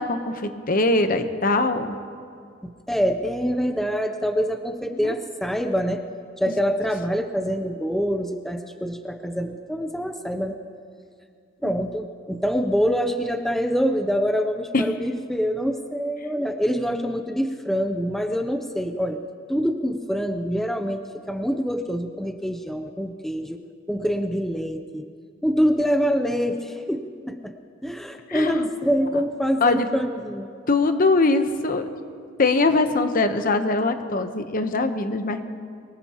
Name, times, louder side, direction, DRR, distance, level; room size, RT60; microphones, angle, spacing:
voice 1, 0.0-2.0 4.9-5.1 11.6-11.7 14.7-14.8 28.3-28.7 29.6-29.9 30.7-31.9 32.4-35.4, left 3 dB, 45° left, 8 dB, 0.9 m, -22 dB
voice 2, 2.6-6.1 6.4-10.6 11.6-19.2 19.5-23.6 23.9-25.1 25.4-27.5 27.8-30.5, equal, ahead, 6 dB, 0.6 m, -25 dB
23.0 x 20.0 x 2.9 m, 2.2 s
head